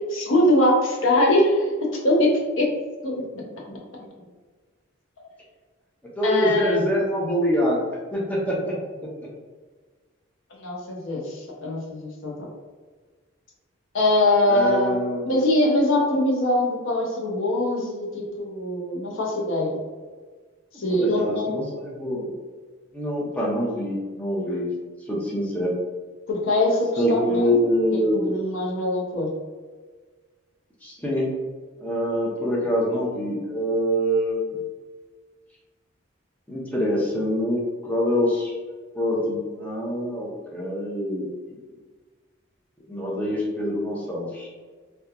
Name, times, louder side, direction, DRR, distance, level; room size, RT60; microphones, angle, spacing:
voice 1, 0.1-1.7 2.0-2.3 2.6-2.7 3.0-3.2 6.2-6.8 10.6-12.5 13.9-14.9 15.2-19.8 20.7-21.6 26.3-27.5 28.1-29.3, left 1 dB, 70° left, -2 dB, 0.6 m, -22 dB
voice 2, 6.2-7.8 8.1-8.6 14.4-15.3 20.9-22.3 22.9-24.6 25.1-25.7 27.0-28.2 30.8-31.3 31.8-34.6 36.5-38.5 38.9-41.3 42.9-44.5, equal, 5° left, -5 dB, 0.5 m, -25 dB
2.8 x 2.2 x 2.3 m, 1.4 s
head